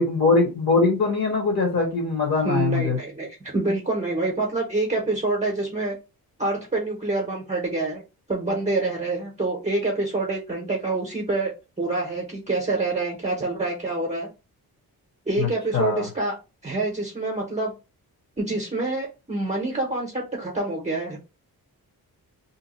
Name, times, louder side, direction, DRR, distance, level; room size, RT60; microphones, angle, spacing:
voice 1, 0.0-3.0 15.4-15.5 15.7-16.0, left 3 dB, 45° left, 1.0 m, -22 dB
voice 2, 2.4-6.0 6.4-8.0 8.3-11.5 11.8-14.3 15.3-16.3 16.6-17.7 18.4-21.2, right 2 dB, 20° right, 0.7 m, -26 dB
2.8 x 2.2 x 4.0 m
wide cardioid pair, 160°, 38 cm